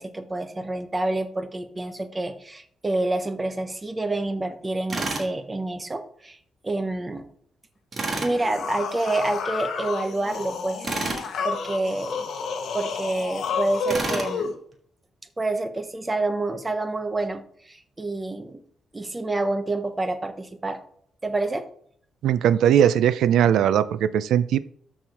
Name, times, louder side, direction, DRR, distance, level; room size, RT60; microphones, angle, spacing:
voice 1, 0.0-6.4 6.6-7.3 8.2-11.1 11.4-12.3 12.7-14.5 15.4-18.6 18.9-20.8 21.2-21.6, right 2 dB, 15° right, 8 dB, 0.8 m, -28 dB
Tools, 4.9-5.3 7.9-8.3 10.8-11.3 13.9-14.3, right 3 dB, 30° right, 1.6 m, -29 dB
sound 1, 8.2-14.5, left 4 dB, 60° left, 1.2 m, -31 dB
voice 2, 22.2-24.6, right 10 dB, 85° right, 15 dB, 0.5 m, -19 dB
13.0 x 4.4 x 4.7 m, 0.63 s
wide cardioid pair, 180°, 0 cm